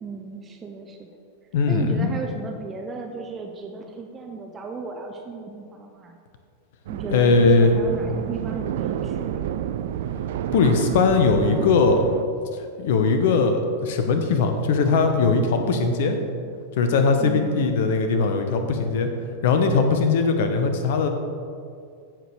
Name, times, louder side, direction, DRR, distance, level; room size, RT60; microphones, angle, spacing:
voice 1, 0.0-1.1 1.7-6.2 6.9-9.4 17.2-17.7, right 4 dB, 20° right, 2 dB, 0.6 m, -35 dB
voice 2, 1.5-2.1 7.1-7.7 10.5-12.0 12.8-16.2 16.8-19.1 19.4-21.1, left 4 dB, 55° left, 6 dB, 0.9 m, -20 dB
sound 1, 6.9-12.2, right 10 dB, 55° right, 0.3 m, -30 dB
15.0 x 5.0 x 3.3 m, 2.3 s
figure-of-eight pair, 90°, 0 cm